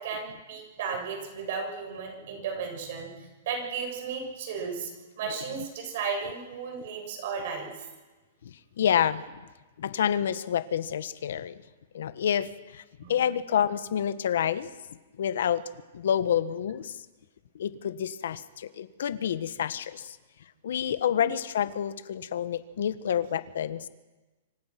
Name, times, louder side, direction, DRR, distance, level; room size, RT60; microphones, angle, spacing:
voice 1, 0.0-4.9 5.2-7.7 13.0-13.2 21.2-21.3, right 5 dB, 50° right, 2 dB, 7.1 m, -34 dB
voice 2, 8.4-9.2 9.8-11.6 11.9-12.8 13.1-14.7 15.2-15.6 15.9-16.9 17.5-20.2 20.6-23.9, left 9 dB, 70° left, 13 dB, 1.4 m, -28 dB
27.0 x 26.0 x 6.1 m, 1.2 s
hypercardioid pair, 170°, 0 cm